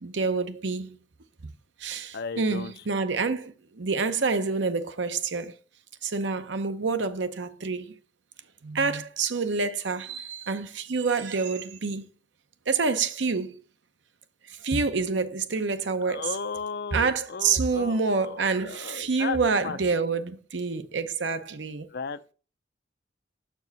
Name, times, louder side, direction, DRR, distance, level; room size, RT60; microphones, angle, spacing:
voice 1, 0.0-1.0 1.8-5.5 6.0-7.9 8.6-12.1 12.7-13.6 14.5-16.4 16.9-21.9, right 4 dB, 80° right, 0.8 m, -27 dB
voice 2, 2.1-2.7 3.0-3.1 16.0-19.4 19.6-19.8 21.9-22.3, left 5 dB, 60° left, 0.5 m, -35 dB
7.1 x 4.5 x 4.0 m
head